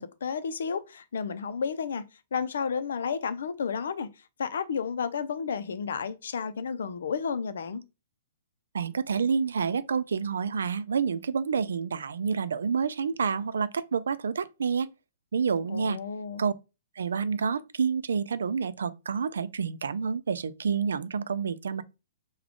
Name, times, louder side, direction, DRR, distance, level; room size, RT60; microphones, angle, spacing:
voice 1, 0.0-2.0 2.3-4.1 4.4-7.8 15.7-16.4, left 6 dB, 75° left, 0.5 m, -32 dB
voice 2, 8.7-14.9 15.3-16.0 16.4-16.5 17.0-21.8, right 6 dB, 90° right, 0.4 m, -28 dB
3.6 x 2.3 x 3.6 m
hypercardioid pair, 155°, 0 cm